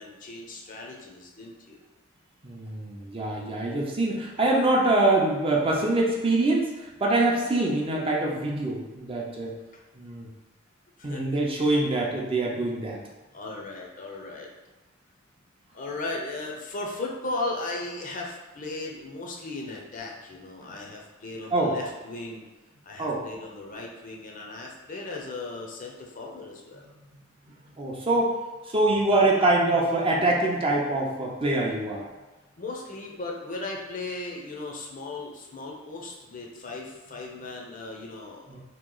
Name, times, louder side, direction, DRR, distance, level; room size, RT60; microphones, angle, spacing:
voice 1, 0.0-1.8 11.0-11.3 13.3-14.5 15.7-22.5 22.8-26.8 32.6-38.4, left 2 dB, 40° left, -1 dB, 0.6 m, -36 dB
voice 2, 2.4-9.5 10.0-10.3 11.0-13.0 21.5-21.8 23.0-23.2 27.7-28.4 28.7-32.0 38.5-38.6, right 2 dB, 30° right, -1 dB, 0.5 m, -24 dB
3.0 x 2.8 x 3.8 m, 1.2 s
head